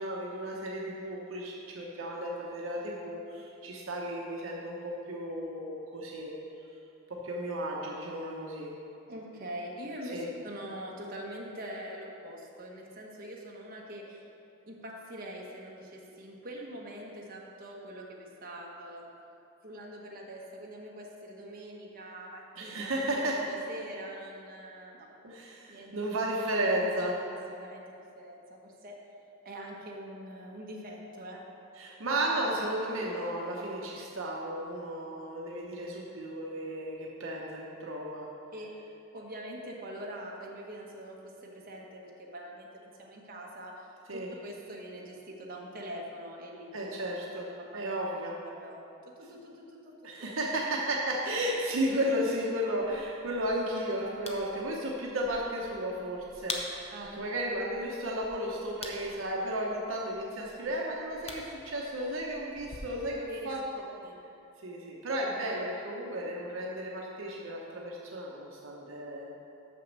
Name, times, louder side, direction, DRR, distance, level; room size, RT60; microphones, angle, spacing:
voice 1, 0.0-6.3 7.1-8.7 10.1-10.3 22.6-23.4 25.2-27.2 31.8-38.3 44.1-44.3 46.7-47.4 47.7-48.3 50.0-63.6 64.6-69.4, right 1 dB, 70° right, -2 dB, 0.9 m, -34 dB
voice 2, 9.1-14.3 14.7-19.1 19.6-22.7 23.3-25.1 25.7-25.9 27.0-29.0 29.4-31.4 38.5-38.7 39.1-46.9 47.4-47.8 48.2-50.3 56.9-57.2 63.3-63.5 64.0-64.2 64.9-65.0, right 1 dB, 45° right, -2 dB, 1.2 m, -44 dB
sound 1, 52.8-62.8, left 3 dB, 30° left, 0.8 m, -46 dB
6.6 x 6.0 x 6.6 m, 2.7 s
head